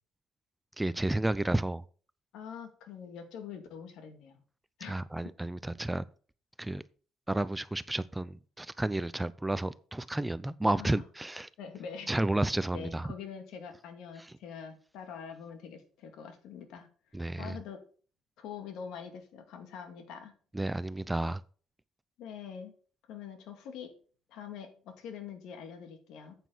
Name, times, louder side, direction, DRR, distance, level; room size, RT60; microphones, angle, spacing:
voice 1, 0.8-1.8 4.9-6.0 6.6-6.8 7.3-11.5 12.1-13.1 17.1-17.5 20.5-21.4, right 1 dB, 10° right, 0.5 m, -31 dB
voice 2, 2.3-4.4 4.8-5.0 10.7-11.0 11.6-12.1 12.7-16.9 17.4-17.8 18.4-20.4 22.2-22.7 23.1-23.9 24.3-26.4, left 7 dB, 80° left, 2.2 m, -44 dB
9.1 x 8.2 x 4.0 m
cardioid pair, 100°, 0 cm